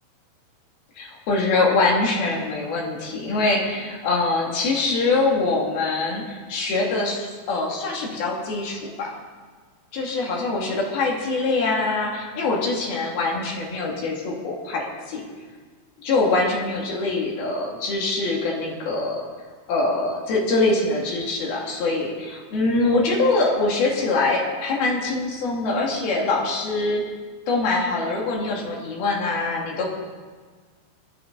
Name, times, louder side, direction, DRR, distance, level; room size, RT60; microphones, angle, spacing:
voice 1, 1.0-9.1 9.9-15.2 16.0-19.2 19.7-27.0 27.5-29.9, left 3 dB, 85° left, -2 dB, 4.4 m, -24 dB
24.5 x 10.5 x 4.1 m, 1.5 s
omnidirectional pair, 4.3 m